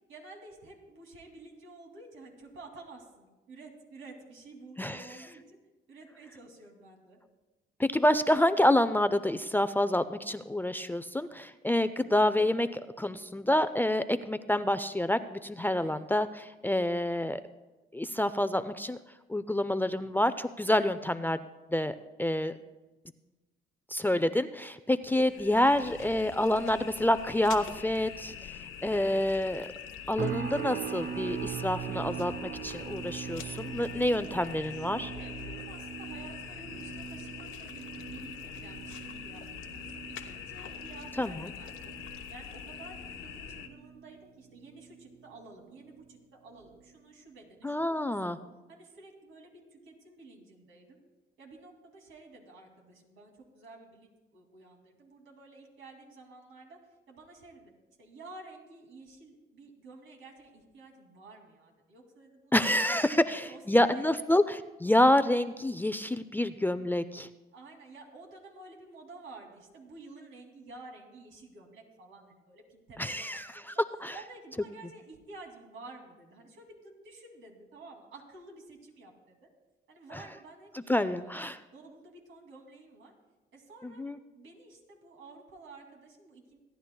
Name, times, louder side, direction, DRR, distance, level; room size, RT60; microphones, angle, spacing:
voice 1, 0.1-5.6 5.9-7.2 15.7-16.1 25.0-26.2 34.7-39.4 39.7-42.0 42.3-48.4 48.7-51.0 51.4-56.8 57.1-57.7 58.0-62.5 63.1-64.4 67.5-73.7 74.1-79.5 79.9-81.4 81.7-83.1 83.5-84.0 84.3-86.6, right 3 dB, 80° right, 2 dB, 2.6 m, -51 dB
voice 2, 7.8-17.4 17.9-19.0 19.3-21.4 21.7-22.6 23.9-28.3 28.8-29.7 30.1-35.1 41.2-41.5 47.6-48.4 62.5-67.3 73.0-73.5 74.0-74.1 80.9-81.6 83.8-84.2, left 1 dB, 10° left, 11 dB, 0.4 m, -28 dB
sound 1, 25.1-43.7, left 8 dB, 80° left, 1.0 m, -44 dB
sound 2, 30.2-45.4 45.7-46.1 46.6-46.8, right 9 dB, 50° right, 0.5 m, -41 dB
26.5 x 10.0 x 2.3 m, 1.1 s
cardioid pair, 90°, 20 cm